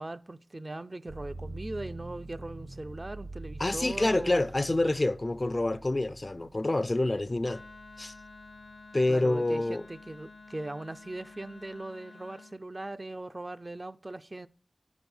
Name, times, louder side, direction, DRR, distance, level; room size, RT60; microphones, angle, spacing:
voice 1, 0.0-4.5 9.1-14.5, right 2 dB, 40° right, 0.4 m, -40 dB
sound 1, 1.1-8.9 9.4-10.2, right 2 dB, 80° right, 0.8 m, -46 dB
voice 2, 3.6-7.6 8.0-8.1 8.9-9.8, left 2 dB, 45° left, 0.4 m, -27 dB
Wind instrument woodwind instrument, 7.4-12.6, left 3 dB, 80° left, 0.9 m, -51 dB
10.5 x 6.1 x 5.4 m
wide cardioid pair, 45°, 0 cm